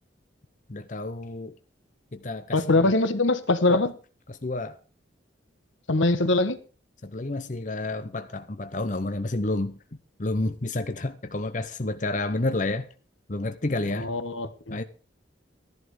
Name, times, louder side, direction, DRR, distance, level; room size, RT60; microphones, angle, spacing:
voice 1, 0.7-1.5 2.1-2.9 3.7-3.8 4.4-4.8 7.0-9.8 10.2-12.9 13.3-14.1 14.7-14.8, left 2 dB, 40° left, 0.8 m, -30 dB
voice 2, 2.5-3.9 5.9-6.6 13.9-14.8, left 2 dB, 80° left, 1.3 m, -23 dB
13.5 x 11.0 x 4.9 m
head